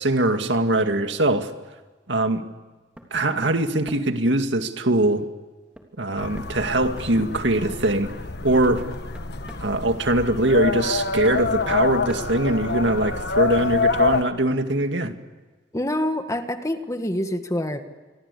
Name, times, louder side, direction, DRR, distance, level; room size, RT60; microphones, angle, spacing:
voice 1, 0.0-1.5 2.1-2.4 3.1-5.3 6.0-8.1 8.4-8.8 9.6-15.1, right 1 dB, 80° right, 6 dB, 2.2 m, -22 dB
sound 1, 3.0-3.1 3.4-4.2 5.8-5.9 6.4-6.5 7.0-7.2 8.0-8.1 8.6-9.7 10.7-10.8 11.2-13.0, equal, 5° right, 3.3 m, -44 dB
sound 2, 6.2-14.2, left 4 dB, 65° left, 1.3 m, -27 dB
voice 2, 15.7-17.8, left 1 dB, 20° left, 7 dB, 1.8 m, -26 dB
27.0 x 23.0 x 8.5 m, 1.3 s
head